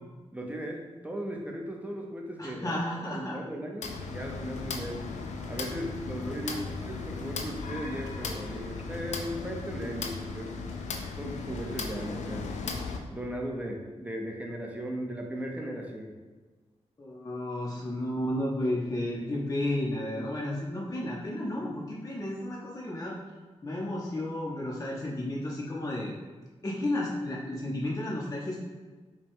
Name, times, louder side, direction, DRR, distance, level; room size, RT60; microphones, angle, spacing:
voice 1, 0.3-5.0 5.5-10.5 11.2-12.5 13.1-16.1, equal, 10° right, 0 dB, 0.7 m, -37 dB
voice 2, 2.4-3.4 6.4-6.6 17.0-23.2 23.6-26.1 26.6-28.6, left 1 dB, 30° left, -4 dB, 0.6 m, -32 dB
sound 1, 3.8-13.0, left 4 dB, 85° left, 0.4 m, -36 dB
5.1 x 2.2 x 3.5 m, 1.3 s
cardioid pair, 85°, 12 cm